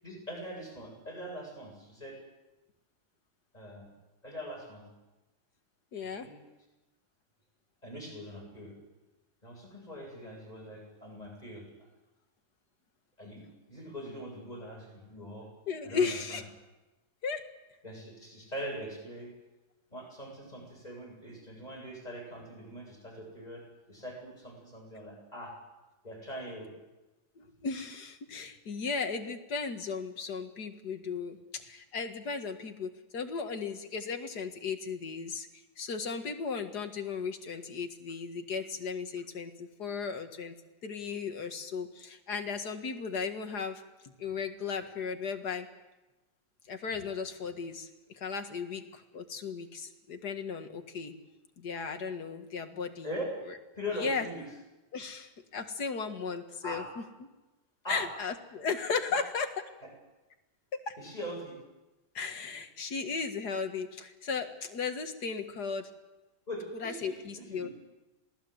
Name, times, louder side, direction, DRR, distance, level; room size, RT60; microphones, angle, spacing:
voice 1, 0.0-2.2 3.5-3.9 4.2-4.8 6.2-6.4 7.8-8.7 9.4-11.9 13.2-15.5 15.8-16.4 17.8-19.3 19.9-25.6 26.0-26.7 53.0-53.3 53.7-54.4 56.6-56.8 57.8-58.1 59.1-59.2 59.8-59.9 61.0-61.6 66.5-67.7, equal, 20° left, -1 dB, 8.2 m, -42 dB
voice 2, 5.9-6.3 15.7-16.4 17.2-17.4 27.4-35.5 35.8-40.5 40.8-45.7 46.7-51.1 51.6-53.1 53.9-54.3 54.9-56.8 57.9-59.5 60.7-61.0 62.1-65.9 66.8-67.7, left 5 dB, 60° left, 6 dB, 2.4 m, -36 dB
27.0 x 19.0 x 8.1 m, 1.1 s
omnidirectional pair, 2.0 m